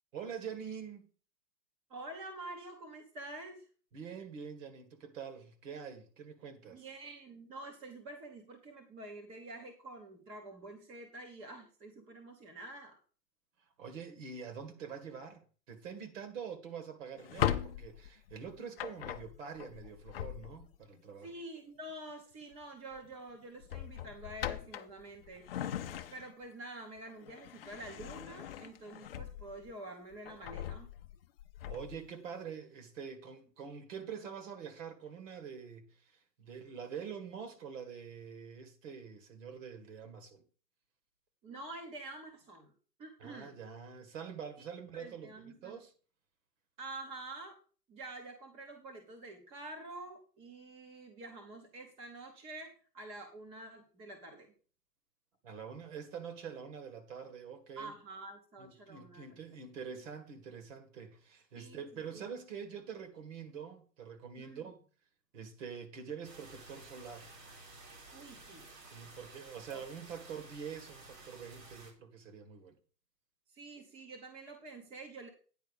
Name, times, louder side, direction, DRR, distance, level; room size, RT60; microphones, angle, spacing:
voice 1, 0.1-1.1 3.9-6.9 13.8-21.3 31.7-40.4 43.2-45.9 55.4-57.9 58.6-64.8 65.3-67.3 68.9-72.7, right 7 dB, 50° right, 2.0 m, -45 dB
voice 2, 1.9-3.7 6.7-13.0 21.2-25.8 26.1-30.9 41.4-42.7 43.0-43.6 44.9-45.8 46.8-47.6 47.9-54.5 57.8-59.4 61.5-62.2 64.4-64.7 68.1-68.7 69.7-69.8 73.5-75.3, right 2 dB, 10° right, 0.8 m, -48 dB
Drawer open or close, 17.2-20.8 22.3-22.6 23.0-23.1 23.6-26.5 27.0-29.7 30.1-32.1, left 11 dB, 35° left, 0.6 m, -39 dB
sound 1, 66.2-71.9, right 2 dB, 70° right, 3.6 m, -53 dB
9.4 x 4.5 x 6.8 m
hypercardioid pair, 135°, 50 cm